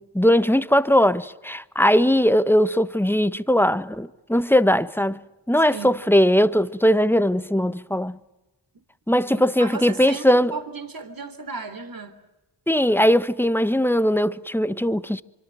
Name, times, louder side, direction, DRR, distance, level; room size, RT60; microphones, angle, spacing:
voice 1, 0.0-5.2 5.5-8.2 9.1-10.5 12.7-15.2, equal, 5° left, 1.3 m, -19 dB
voice 2, 5.6-6.0 9.3-12.2, right 4 dB, 45° right, 3.6 m, -35 dB
25.5 x 25.0 x 9.1 m
cardioid pair, 45°, 49 cm